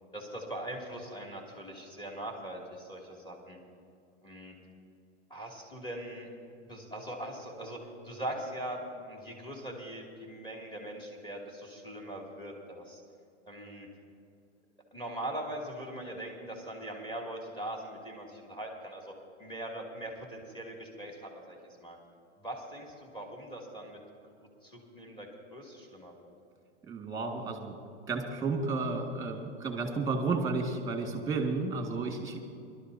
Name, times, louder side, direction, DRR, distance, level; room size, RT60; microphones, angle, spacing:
voice 1, 0.1-3.6 4.2-4.5 5.3-6.3 6.6-13.0 13.4-13.9 14.9-19.1 19.4-22.0 22.4-24.0 24.4-26.3, right 1 dB, 15° left, -1 dB, 2.7 m, -41 dB
voice 2, 26.8-27.8 28.1-32.5, right 3 dB, 10° right, 3 dB, 2.0 m, -32 dB
24.0 x 12.5 x 2.8 m, 2.4 s
hypercardioid pair, 130°, 36 cm